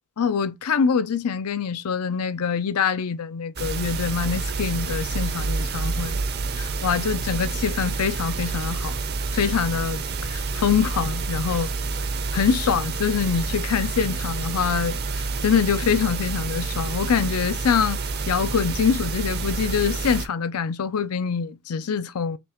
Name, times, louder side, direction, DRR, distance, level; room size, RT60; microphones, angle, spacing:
voice 1, 0.2-6.2 6.6-8.9 9.3-10.0 10.3-11.7 12.3-18.0 18.3-22.4, left 6 dB, 90° left, 0.5 m, -24 dB
sound 1, 3.6-20.3, right 4 dB, 45° right, 0.6 m, -28 dB
5.2 x 2.3 x 3.0 m
head